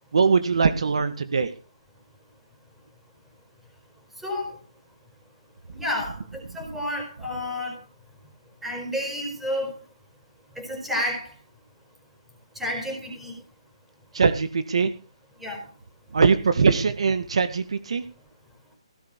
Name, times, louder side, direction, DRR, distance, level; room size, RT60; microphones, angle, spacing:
voice 1, 0.1-1.5 14.1-14.9 16.1-18.0, right 5 dB, 70° right, 10 dB, 2.0 m, -21 dB
voice 2, 5.7-7.8 8.6-9.7 10.6-11.3 12.5-13.3 15.4-15.7, left 1 dB, 5° right, 2 dB, 4.7 m, -30 dB
17.0 x 7.0 x 7.0 m, 0.34 s
hypercardioid pair, 165°, 3 cm